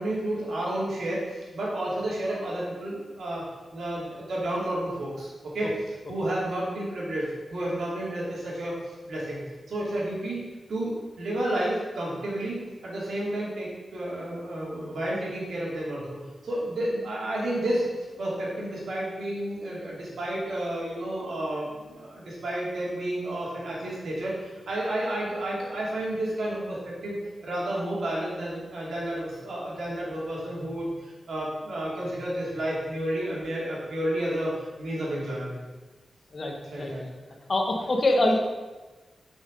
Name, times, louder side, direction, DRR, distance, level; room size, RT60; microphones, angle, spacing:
voice 1, 0.0-3.4 3.7-5.7 6.1-9.4 9.7-10.4 10.7-17.9 18.2-27.2 27.4-35.6 36.7-37.0, right 1 dB, 75° right, -5 dB, 2.7 m, -31 dB
voice 2, 36.3-36.9 37.5-38.4, left 1 dB, 35° left, 2 dB, 1.0 m, -24 dB
6.9 x 5.5 x 5.2 m, 1.2 s
wide cardioid pair, 175°, 0 cm